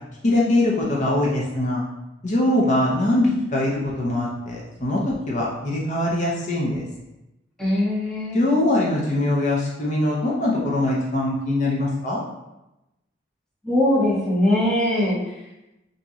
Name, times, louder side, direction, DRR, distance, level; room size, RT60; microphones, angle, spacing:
voice 1, 0.2-1.8 2.2-6.9 8.3-12.2, left 1 dB, 40° left, -4 dB, 0.6 m, -22 dB
voice 2, 7.6-8.5 13.6-15.2, left 1 dB, 5° left, -7 dB, 0.7 m, -21 dB
2.9 x 2.7 x 3.5 m, 0.95 s
head